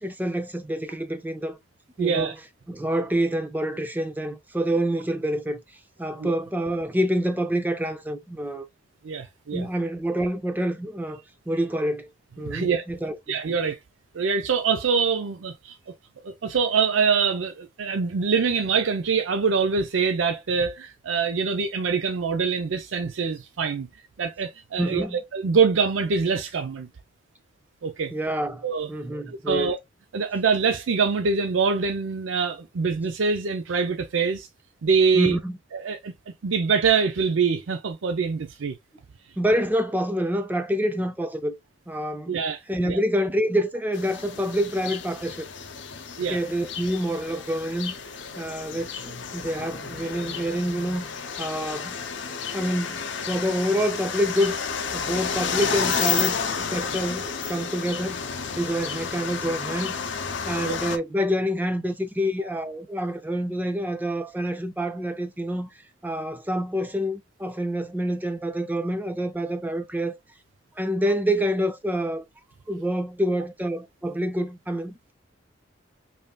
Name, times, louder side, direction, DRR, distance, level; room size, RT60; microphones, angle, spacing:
voice 1, 0.0-1.6 2.0-2.3 2.7-5.6 6.0-8.7 9.5-12.1 12.4-13.3 24.8-25.2 28.1-29.7 35.1-35.6 39.4-41.5 41.9-42.4 42.7-45.5 46.3-47.9 48.4-52.0 52.5-54.6 54.9-56.4 56.7-58.2 58.5-59.9 60.5-65.7 66.0-70.1 70.8-72.2 72.7-75.1, equal, 10° right, 0.4 m, -27 dB
voice 2, 2.0-2.3 6.2-6.3 9.0-9.6 12.4-12.8 13.3-13.8 14.1-15.8 16.2-23.9 24.2-26.9 27.8-28.1 28.6-28.9 29.5-29.8 30.1-34.5 34.8-35.3 35.7-36.1 36.4-38.8 42.3-43.0 46.2-46.4 60.6-60.8, right 5 dB, 85° right, 0.5 m, -24 dB
sound 1, 43.9-61.0, left 6 dB, 65° left, 0.6 m, -31 dB
5.2 x 2.7 x 2.2 m
head